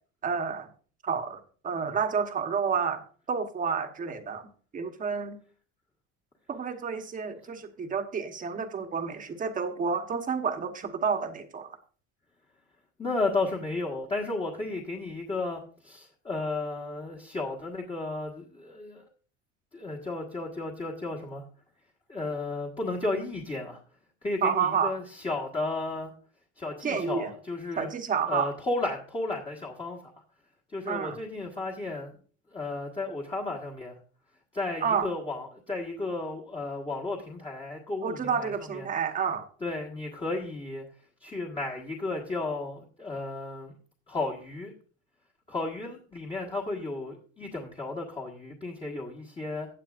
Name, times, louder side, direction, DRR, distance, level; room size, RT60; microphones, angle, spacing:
voice 1, 0.2-0.7 1.0-1.4 1.6-3.0 3.3-5.4 6.5-11.7 24.4-24.9 26.8-27.3 27.8-28.5 30.9-31.2 34.8-35.1 38.0-39.5, right 6 dB, 25° right, 6 dB, 1.2 m, -29 dB
voice 2, 13.0-19.0 19.7-21.4 22.1-23.8 24.2-26.1 26.6-27.9 28.3-30.1 30.7-32.1 32.5-33.9 34.5-38.9 39.6-40.8 41.2-43.7 44.1-44.7 45.5-49.7, left 2 dB, 15° left, -2 dB, 1.5 m, -33 dB
15.5 x 8.6 x 2.5 m, 0.42 s
cardioid pair, 150°, 32 cm